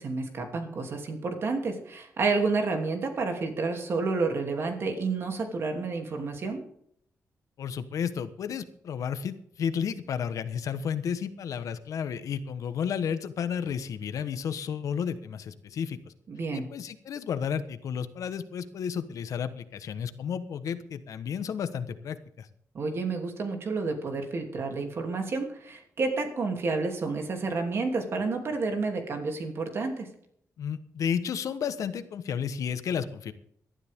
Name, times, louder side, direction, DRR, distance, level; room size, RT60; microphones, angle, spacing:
voice 1, 0.0-6.6 16.3-16.7 22.7-30.1, right 3 dB, 45° right, 4 dB, 3.0 m, -30 dB
voice 2, 7.6-16.0 16.5-22.5 30.6-33.3, left 7 dB, 75° left, 11 dB, 1.2 m, -32 dB
18.5 x 12.5 x 3.7 m, 0.67 s
wide cardioid pair, 180°, 6 cm